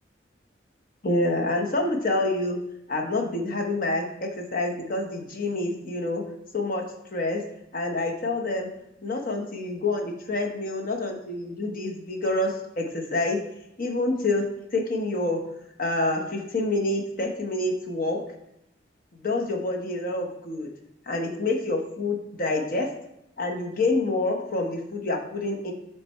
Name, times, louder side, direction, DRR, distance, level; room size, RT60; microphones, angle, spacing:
voice 1, 1.0-2.6 2.9-6.2 6.5-7.4 7.7-8.7 9.0-13.4 13.8-15.5 15.8-18.2 19.2-20.7 21.1-22.9 23.4-25.7, left 2 dB, 50° left, 2 dB, 0.8 m, -27 dB
7.2 x 3.4 x 4.4 m, 0.81 s
head